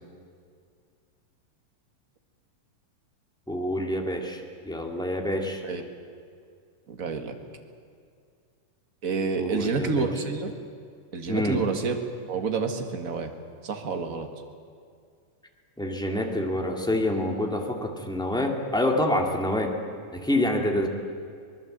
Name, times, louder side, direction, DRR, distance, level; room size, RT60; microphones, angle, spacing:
voice 1, 3.5-5.6 9.4-10.1 11.3-11.6 15.8-19.7 20.1-20.9, left 1 dB, ahead, 1 dB, 1.6 m, -27 dB
voice 2, 6.9-7.3 9.0-10.5 11.1-12.0 12.3-13.3 13.6-14.3, right 4 dB, 40° right, 5 dB, 1.3 m, -28 dB
24.0 x 20.5 x 8.0 m, 2.2 s
omnidirectional pair, 3.7 m